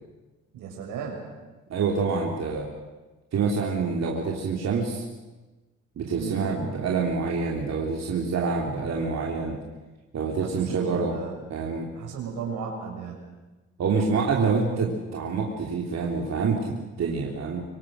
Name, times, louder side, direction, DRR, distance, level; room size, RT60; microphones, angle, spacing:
voice 1, 0.5-1.2 6.1-6.4 10.4-11.4 12.0-13.3, right 6 dB, 90° right, 1 dB, 6.5 m, -35 dB
voice 2, 1.7-2.7 3.3-5.0 6.0-9.6 10.1-11.2 11.5-11.9 13.8-17.6, right 4 dB, 60° right, -1 dB, 3.4 m, -26 dB
25.0 x 25.0 x 6.4 m, 1.2 s
cardioid pair, 90°, 30 cm